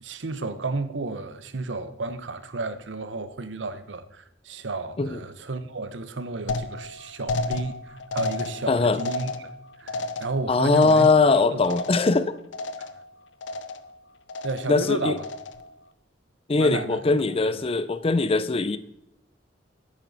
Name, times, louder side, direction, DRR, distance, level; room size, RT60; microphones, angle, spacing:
voice 1, 0.0-9.5 9.8-11.1 11.5-11.7 14.4-15.2 16.6-17.7, right 3 dB, 80° right, 0.8 m, -32 dB
sound 1, 6.5-12.3 12.5-13.1 13.4-14.0 14.3-14.8 15.2-15.7, left 2 dB, 80° left, 0.6 m, -33 dB
voice 2, 8.7-9.0 10.5-12.4 14.7-15.2 16.5-18.8, left 3 dB, 30° left, 0.5 m, -21 dB
10.5 x 8.8 x 4.0 m
head